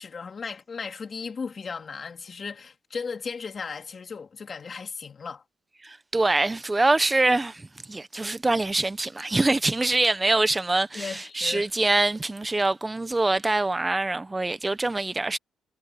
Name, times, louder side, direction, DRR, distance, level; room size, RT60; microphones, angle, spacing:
voice 1, 0.0-5.4 10.9-11.7, left 5 dB, 40° left, 2.9 m, -36 dB
voice 2, 5.8-15.4, right 2 dB, 15° right, 1.2 m, -24 dB
cardioid pair, 90°, 0 cm